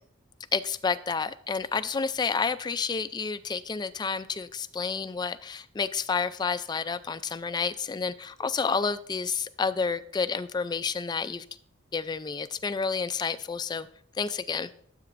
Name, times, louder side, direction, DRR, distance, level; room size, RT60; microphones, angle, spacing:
voice 1, 0.5-11.5 11.9-13.9 14.2-14.7, left 5 dB, 20° left, 12 dB, 0.3 m, -30 dB
13.0 x 7.7 x 2.5 m, 0.65 s
head